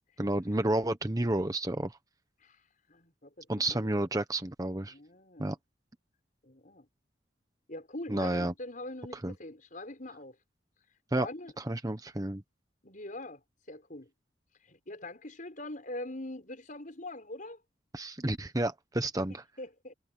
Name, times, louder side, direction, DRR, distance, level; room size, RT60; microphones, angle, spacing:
voice 1, 0.2-2.0 3.5-4.9 5.4-5.6 8.1-8.5 9.2-9.3 11.1-11.3 11.7-12.4 17.9-19.4, right 1 dB, 20° right, 1.0 m, -30 dB
voice 2, 2.9-4.0 4.9-5.6 6.4-6.9 7.7-10.4 11.1-11.5 12.8-13.4 13.7-14.1 14.6-17.6 19.6-19.9, left 1 dB, 45° left, 6.5 m, -43 dB
head